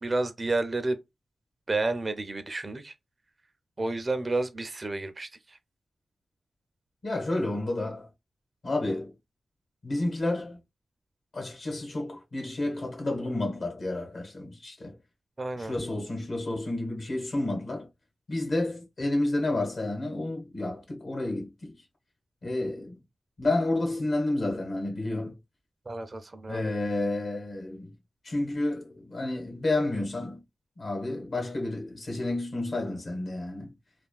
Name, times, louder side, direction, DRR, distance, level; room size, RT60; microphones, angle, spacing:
voice 1, 0.0-1.0 1.7-2.9 3.8-5.6 15.4-15.7 25.9-26.6, right 2 dB, 40° right, 0.5 m, -30 dB
voice 2, 7.0-8.1 8.6-9.1 9.8-10.6 11.3-15.0 15.5-17.9 18.3-21.7 22.4-23.0 23.4-25.4 26.5-27.9 28.2-30.4 30.8-33.7, left 2 dB, 65° left, 1.2 m, -30 dB
3.3 x 2.3 x 2.3 m
cardioid pair, 70°, 0 cm